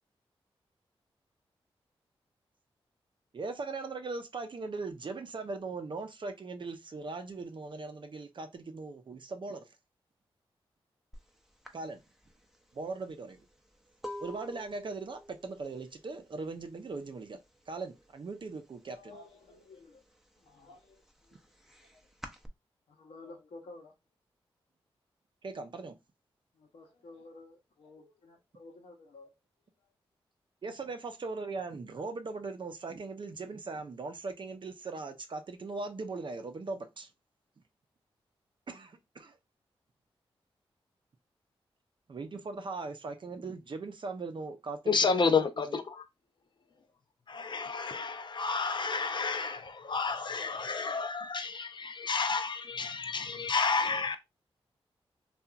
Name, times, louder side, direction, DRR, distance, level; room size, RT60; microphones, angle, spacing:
voice 1, 3.3-9.7 11.7-12.0 12.7-13.4 14.2-17.4 17.7-19.1 25.4-25.9 30.6-37.1 38.7-39.4 42.1-45.3 45.7-45.8, right 3 dB, 50° right, 0.6 m, -39 dB
sound 1, 11.1-11.3 11.6-17.3 17.6-18.1 18.4-19.5 19.9-22.5, left 1 dB, 5° right, 0.6 m, -48 dB
voice 2, 18.9-20.1 20.4-21.6 21.9-22.0 22.9-23.9 26.5-29.3 29.8-29.9, left 2 dB, 80° left, 0.8 m, -53 dB
voice 3, 44.9-46.0 47.3-54.2, left 4 dB, 50° left, 0.5 m, -30 dB
2.8 x 2.4 x 2.3 m
cardioid pair, 50°, 10 cm